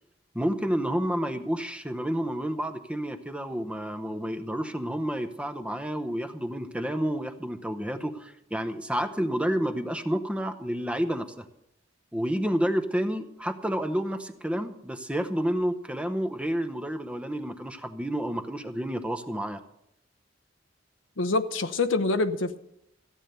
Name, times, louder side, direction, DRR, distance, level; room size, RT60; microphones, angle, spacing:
voice 1, 0.3-11.5 12.1-19.6, equal, 5° right, 8 dB, 0.8 m, -30 dB
voice 2, 21.2-22.6, left 3 dB, 85° left, 11 dB, 0.9 m, -25 dB
15.0 x 9.1 x 6.7 m, 0.80 s
head